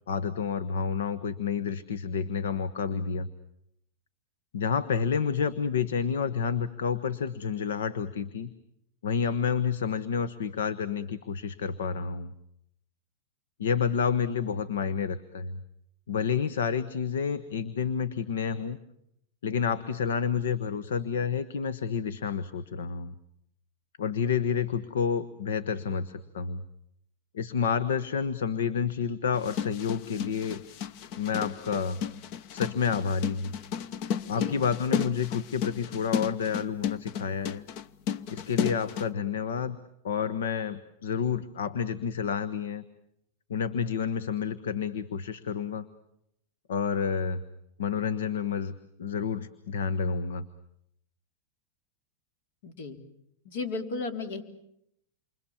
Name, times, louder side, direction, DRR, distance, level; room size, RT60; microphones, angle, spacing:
voice 1, 0.1-3.3 4.5-8.5 9.0-12.3 13.6-15.6 16.1-18.8 19.4-23.1 24.0-26.6 27.3-30.6 31.2-32.0 32.5-33.5 34.3-37.6 38.3-39.8 40.0-42.8 43.5-45.8 46.7-47.4 47.8-48.7 49.0-50.4, left 6 dB, 90° left, 14 dB, 1.2 m, -29 dB
sound 1, 29.3-39.1, left 8 dB, 50° left, 1.0 m, -33 dB
voice 2, 34.2-34.6 52.6-53.0 53.4-54.4, left 3 dB, 70° left, 7 dB, 3.6 m, -35 dB
28.5 x 24.5 x 7.3 m, 0.77 s
supercardioid pair, 135°, 0 cm